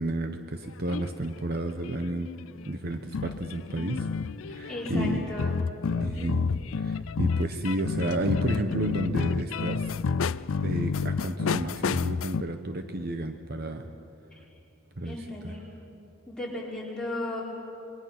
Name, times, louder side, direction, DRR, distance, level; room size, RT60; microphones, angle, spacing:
voice 1, 0.0-2.3 2.6-4.1 4.5-5.3 6.0-6.5 6.8-9.9 10.6-13.9 15.0-15.2 15.4-15.5, right 1 dB, 45° right, 6 dB, 0.9 m, -31 dB
sound 1, 0.6-1.2 1.8-12.4, left 5 dB, 65° left, 0.4 m, -30 dB
voice 2, 4.7-5.6 6.0-6.4 15.0-15.6 16.3-17.4, left 1 dB, 5° left, -6 dB, 4.8 m, -35 dB
27.5 x 22.5 x 6.0 m, 2.9 s
head